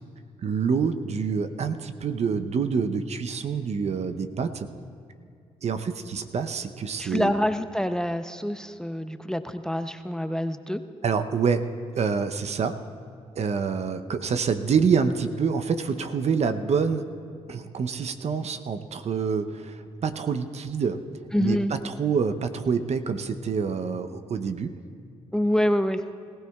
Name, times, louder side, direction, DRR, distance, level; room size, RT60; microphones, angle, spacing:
voice 1, 0.4-4.7 5.6-7.3 11.0-11.6 12.0-12.8 13.4-17.0 17.5-19.8 20.0-21.0 21.4-24.7, right 6 dB, 55° right, 8 dB, 0.7 m, -26 dB
voice 2, 7.0-10.8 21.3-21.7 25.3-26.0, equal, 5° left, 10 dB, 0.6 m, -26 dB
20.5 x 15.5 x 2.4 m, 2.3 s
supercardioid pair, 50°, 13 cm